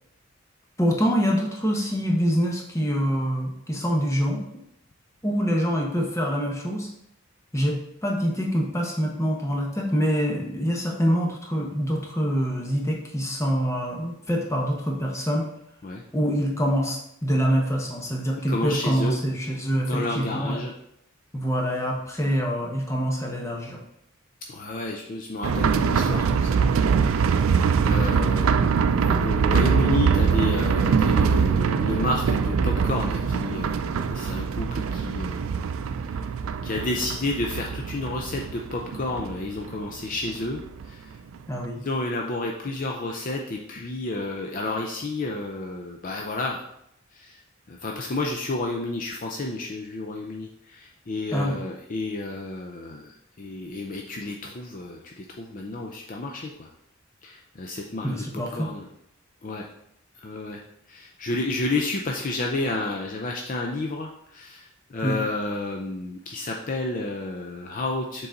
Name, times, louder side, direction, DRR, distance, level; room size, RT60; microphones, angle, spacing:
voice 1, 0.8-4.4 5.2-6.9 7.5-15.5 16.1-20.6 21.3-23.8 41.5-41.8 51.3-51.6 58.0-58.7 65.0-65.2, equal, 15° left, -1 dB, 1.0 m, -25 dB
voice 2, 18.5-19.2 19.7-20.7 24.5-27.5 27.8-35.6 36.6-41.1 41.7-46.6 47.1-47.4 47.7-56.7 57.2-58.9 59.4-59.7 60.2-60.6 60.9-68.3, left 2 dB, 40° left, 1 dB, 0.5 m, -31 dB
sound 1, 25.4-40.9 41.2-41.3 41.6-41.7, right 6 dB, 85° right, 0.4 m, -23 dB
6.9 x 3.9 x 3.9 m, 0.76 s
head